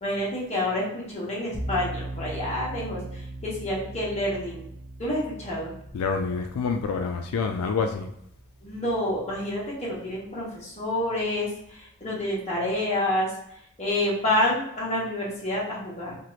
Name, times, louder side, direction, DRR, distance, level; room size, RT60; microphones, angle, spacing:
voice 1, 0.0-4.7 5.0-5.7 8.6-16.2, left 1 dB, 30° left, -6 dB, 1.0 m, -28 dB
sound 1, 1.5-10.4, right 2 dB, 20° right, 0.5 m, -40 dB
voice 2, 5.9-8.1, left 5 dB, 80° left, 5 dB, 0.3 m, -27 dB
2.9 x 2.4 x 3.1 m, 0.76 s
head